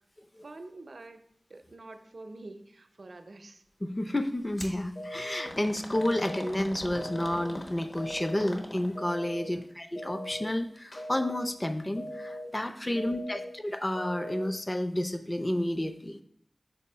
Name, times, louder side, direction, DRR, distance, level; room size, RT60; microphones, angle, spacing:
voice 1, 0.4-1.2 1.5-3.6 9.3-9.7 12.8-13.5, right 2 dB, 75° right, 8 dB, 0.5 m, -47 dB
voice 2, 3.8-16.2, left 1 dB, 25° left, 7 dB, 0.5 m, -31 dB
sound 1, 4.6-4.8 5.5-9.1 10.8-11.1 11.4-11.5 12.4-12.5, left 1 dB, 50° left, 1.0 m, -42 dB
sound 2, 5.0-5.5 6.0-6.5 7.0-7.5 8.0-8.5 9.0-9.5 10.0-10.5 11.0-11.5 12.0-12.5 13.0-13.5 14.0-14.5, left 1 dB, 70° left, 1.3 m, -40 dB
4.6 x 4.2 x 5.5 m, 0.66 s
wide cardioid pair, 55°, 0 cm